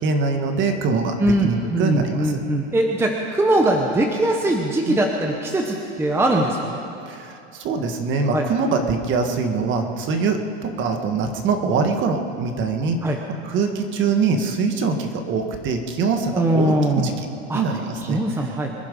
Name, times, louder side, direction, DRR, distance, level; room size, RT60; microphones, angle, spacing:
voice 1, 0.0-2.4 4.9-5.0 7.1-13.1 13.4-17.3 17.5-18.2, right 4 dB, 35° right, 5 dB, 1.7 m, -23 dB
voice 2, 1.2-6.8 8.3-8.4 13.0-13.2 16.3-17.1 17.5-17.6 18.1-18.7, right 1 dB, 5° right, 2 dB, 0.9 m, -21 dB
25.0 x 10.5 x 5.4 m, 2.8 s
supercardioid pair, 140°, 34 cm